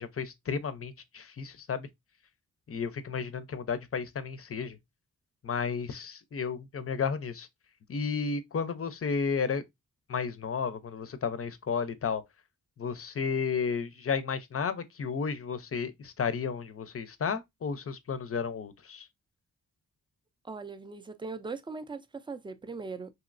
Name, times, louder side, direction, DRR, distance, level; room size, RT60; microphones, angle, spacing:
voice 1, 0.0-1.9 2.7-4.8 5.4-7.5 7.9-9.6 10.1-12.2 12.8-19.1, left 6 dB, 45° left, 0.5 m, -33 dB
voice 2, 20.4-23.1, right 4 dB, 15° right, 0.4 m, -40 dB
3.1 x 2.8 x 2.4 m
wide cardioid pair, 95°, 33 cm